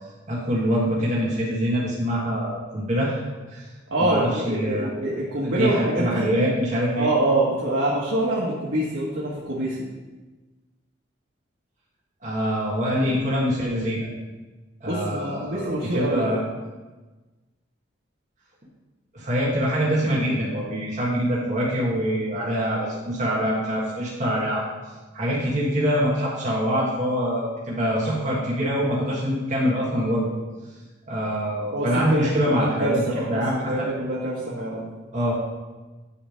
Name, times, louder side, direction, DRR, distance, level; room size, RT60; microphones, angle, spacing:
voice 1, 0.3-3.2 3.5-3.7 4.0-4.9 5.4-7.1 12.2-14.1 14.8-16.4 19.1-24.6 25.1-30.3 31.1-33.7 35.1-35.3, equal, 40° right, -7 dB, 1.6 m, -24 dB
voice 2, 3.9-6.3 6.9-9.8 14.9-16.3 31.7-33.4 33.7-34.8, right 1 dB, 80° right, -5 dB, 1.5 m, -25 dB
9.9 x 3.4 x 6.4 m, 1.2 s
head